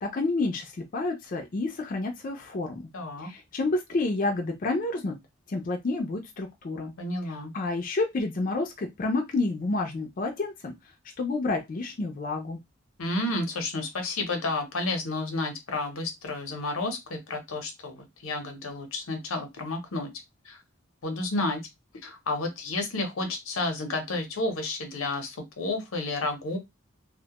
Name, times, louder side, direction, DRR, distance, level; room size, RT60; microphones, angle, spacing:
voice 1, 0.0-2.9 3.2-5.2 5.5-6.9 7.5-10.7 11.2-12.6, left 2 dB, 40° left, 2 dB, 0.4 m, -29 dB
voice 2, 2.9-3.3 7.0-7.5 13.0-20.1 20.5-20.6 21.0-21.6 22.0-26.6, left 2 dB, 85° left, 5 dB, 0.7 m, -31 dB
2.1 x 2.1 x 2.8 m, 0.20 s
head